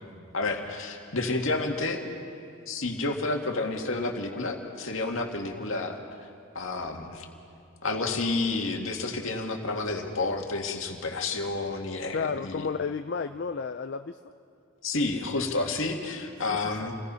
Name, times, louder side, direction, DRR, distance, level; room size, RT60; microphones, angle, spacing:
voice 1, 0.3-2.0 2.7-6.0 6.5-7.3 7.8-12.7 14.8-16.9, left 3 dB, 70° left, 2 dB, 2.0 m, -30 dB
voice 2, 12.1-14.3 16.5-16.8, left 5 dB, 50° left, 8 dB, 0.4 m, -32 dB
28.0 x 17.5 x 5.6 m, 2.4 s
head